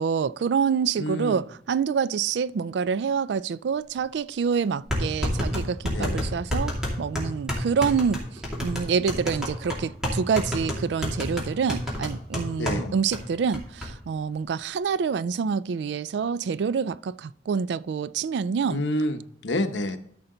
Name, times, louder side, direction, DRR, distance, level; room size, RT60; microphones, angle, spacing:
voice 1, 0.0-8.2 8.6-18.8, right 6 dB, 65° right, 0.3 m, -27 dB
voice 2, 1.0-1.4 5.9-6.2 12.6-12.9 18.7-20.0, left 1 dB, 80° left, 0.9 m, -28 dB
sound 1, 4.0-4.1 4.9-12.8 13.1-13.2 13.5-13.9, equal, 5° right, 2.6 m, -29 dB
13.0 x 5.7 x 3.8 m
head